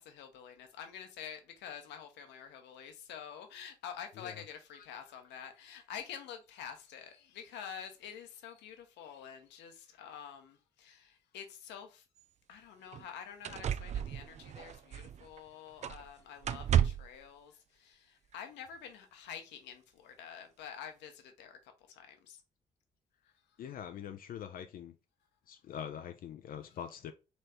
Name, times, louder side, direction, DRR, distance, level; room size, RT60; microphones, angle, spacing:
voice 1, 0.0-12.0 12.5-22.4 23.5-23.6, left 8 dB, 65° left, 0.9 m, -48 dB
sound 1, 12.2-12.3 12.9-13.0 13.4-15.4 15.8-16.1 16.4-17.2 18.3-18.4, right 9 dB, 35° right, 0.4 m, -33 dB
voice 2, 23.6-24.9 25.5-27.1, left 9 dB, 50° left, 0.5 m, -43 dB
4.0 x 3.2 x 3.4 m
figure-of-eight pair, 40°, 19 cm